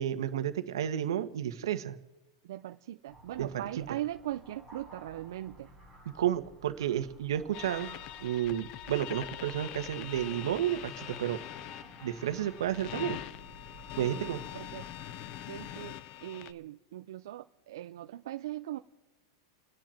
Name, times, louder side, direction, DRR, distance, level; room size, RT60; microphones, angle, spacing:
voice 1, 0.0-2.0 3.4-3.6 6.1-11.4 12.0-13.2 14.0-14.4, right 11 dB, 85° right, 9 dB, 1.4 m, -32 dB
voice 2, 2.4-5.7 14.0-14.9 15.5-18.8, right 13 dB, 65° right, 6 dB, 0.6 m, -40 dB
sound 1, 3.1-15.9, right 1 dB, 10° left, 3.8 m, -54 dB
sound 2, 7.5-16.5, left 13 dB, 30° left, 0.5 m, -43 dB
29.5 x 10.5 x 4.4 m, 1.1 s
supercardioid pair, 175°, 2 cm